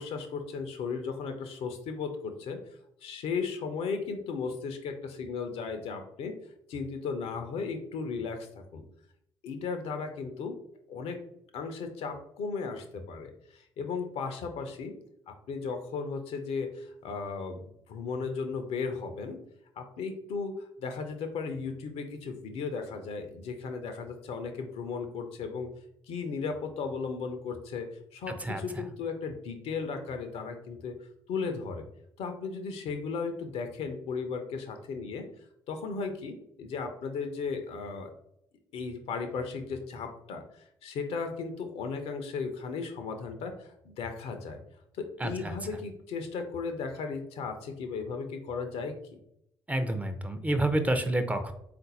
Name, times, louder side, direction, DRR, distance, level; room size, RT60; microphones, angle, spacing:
voice 1, 0.0-2.6 3.0-6.3 6.7-8.5 8.7-8.9 9.4-10.6 10.9-11.2 11.5-14.9 15.3-19.4 19.8-25.7 26.1-31.0 31.3-31.8 32.2-35.3 35.7-38.1 38.7-44.6 45.0-49.2, left 5 dB, 60° left, 7 dB, 0.6 m, -36 dB
voice 2, 45.2-45.5 49.7-51.5, right 1 dB, 10° right, 8 dB, 0.5 m, -28 dB
3.9 x 2.5 x 4.0 m, 0.76 s
figure-of-eight pair, 45°, 12 cm